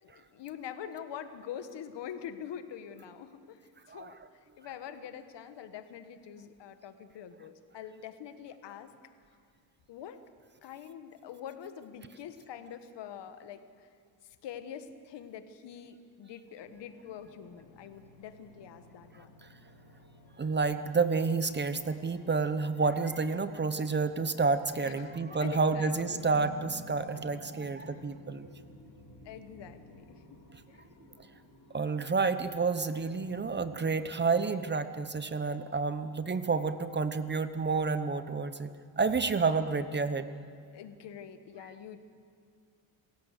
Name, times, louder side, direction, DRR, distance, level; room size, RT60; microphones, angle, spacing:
voice 1, 0.0-3.6 3.9-8.9 9.9-10.2 10.6-13.9 14.2-19.3 24.8-26.3 27.6-28.0 29.2-30.4 30.7-30.8 40.7-42.0, left 9 dB, 65° left, 10 dB, 1.5 m, -45 dB
sound 1, 16.6-33.8, left 1 dB, 45° left, 6.3 m, -54 dB
voice 2, 20.4-28.5 31.7-40.3, right 4 dB, 25° right, 12 dB, 0.9 m, -30 dB
27.0 x 16.0 x 6.6 m, 2.3 s
cardioid pair, 100°, 46 cm